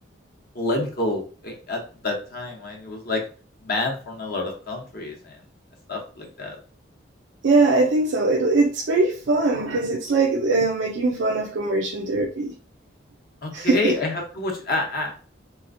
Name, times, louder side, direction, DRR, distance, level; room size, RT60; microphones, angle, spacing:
voice 1, 0.5-3.2 3.6-5.4 5.9-6.6 13.4-15.2, left 2 dB, 50° left, 1 dB, 0.8 m, -28 dB
voice 2, 7.4-12.5 13.5-13.9, right 3 dB, 80° right, 1 dB, 0.4 m, -21 dB
3.3 x 2.8 x 2.5 m, 0.38 s
head